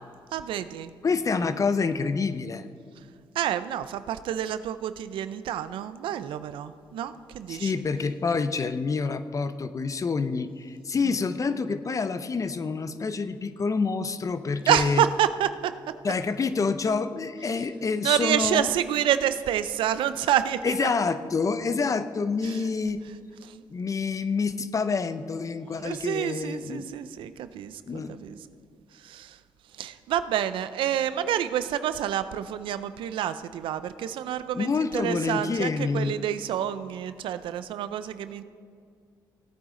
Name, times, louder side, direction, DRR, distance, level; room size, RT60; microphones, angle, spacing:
voice 1, 0.3-0.9 3.4-7.8 14.7-15.7 18.0-20.9 22.5-22.6 25.8-28.4 29.1-29.3 29.8-38.4, right 10 dB, 80° right, 13 dB, 0.5 m, -28 dB
voice 2, 1.0-2.7 7.5-15.0 16.0-18.7 20.6-23.0 23.7-26.8 27.9-28.2 34.5-36.1, left 4 dB, 40° left, 12 dB, 0.7 m, -27 dB
17.0 x 8.8 x 3.8 m, 2.2 s
cardioid pair, 65°, 9 cm